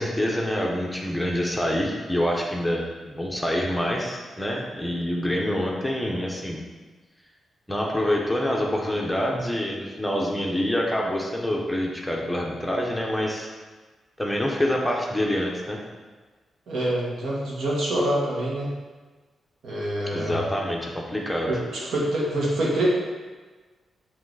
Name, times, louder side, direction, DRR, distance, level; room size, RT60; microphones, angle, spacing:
voice 1, 0.0-6.6 7.7-13.5 14.2-15.8 20.1-21.5, equal, 5° left, -2 dB, 0.6 m, -26 dB
voice 2, 16.7-18.7 19.6-20.4 21.5-22.9, right 1 dB, 75° right, -4 dB, 1.6 m, -26 dB
7.8 x 3.0 x 4.6 m, 1.3 s
wide cardioid pair, 180°, 0 cm